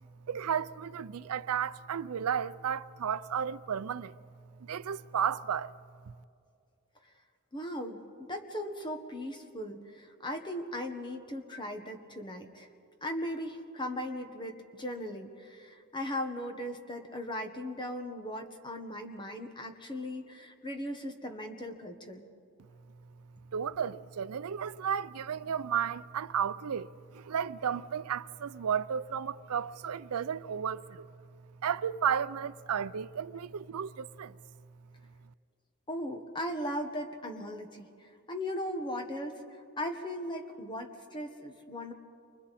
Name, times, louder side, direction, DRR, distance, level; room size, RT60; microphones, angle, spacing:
voice 1, 0.3-4.1 4.6-5.7 23.5-31.1 31.6-34.3, right 8 dB, 80° right, 0.5 m, -33 dB
voice 2, 7.5-8.0 8.3-12.7 13.0-22.2 35.9-41.9, left 1 dB, 20° left, 1.4 m, -38 dB
29.5 x 24.5 x 4.2 m
head